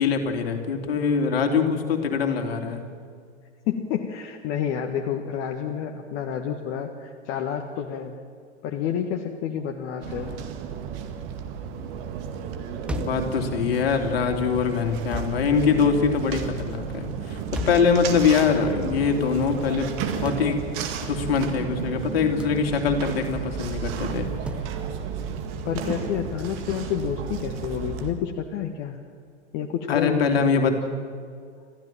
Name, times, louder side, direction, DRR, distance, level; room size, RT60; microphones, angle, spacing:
voice 1, 0.0-2.8 13.0-20.6 21.0-24.3 29.9-30.8, left 5 dB, 55° left, 5 dB, 2.9 m, -23 dB
voice 2, 3.7-8.1 8.6-10.3 25.6-29.0 29.5-30.8, left 8 dB, 35° left, 4 dB, 1.5 m, -29 dB
sound 1, 10.0-28.1, right 7 dB, 40° right, 2.1 m, -33 dB
sound 2, 12.9-13.3 15.1-15.4 17.6-17.9 20.3-20.5 22.4-22.6 24.5-24.7, left 1 dB, 5° right, 0.6 m, -33 dB
26.0 x 15.0 x 7.5 m, 2.1 s
figure-of-eight pair, 100°, 35 cm